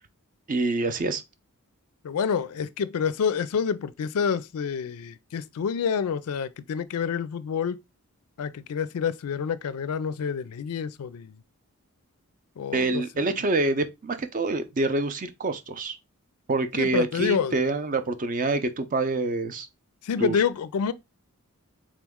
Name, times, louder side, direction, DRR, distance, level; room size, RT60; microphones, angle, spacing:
voice 1, 0.5-1.2 12.7-16.0 16.5-19.7 20.2-20.4, right 3 dB, 35° right, 0.5 m, -26 dB
voice 2, 2.0-7.8 8.4-11.3 12.6-13.0 16.7-17.5 20.1-20.9, left 6 dB, 80° left, 0.4 m, -28 dB
3.8 x 3.0 x 3.5 m
head